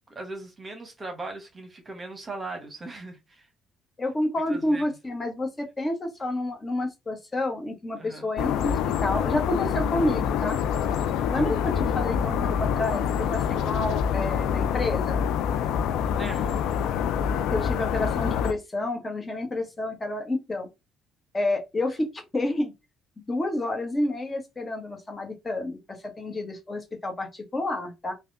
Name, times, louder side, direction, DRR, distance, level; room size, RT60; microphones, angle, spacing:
voice 1, 0.1-3.5 4.5-4.9 8.0-8.3 16.1-16.6, right 2 dB, 30° right, 1.0 m, -39 dB
voice 2, 4.0-10.6 11.3-15.2 17.5-20.7 21.3-22.7 23.3-28.1, left 1 dB, 30° left, 1.1 m, -29 dB
sound 1, 8.4-18.5, left 8 dB, 70° left, 0.3 m, -26 dB
3.3 x 2.2 x 2.6 m
hypercardioid pair, 50°, 0 cm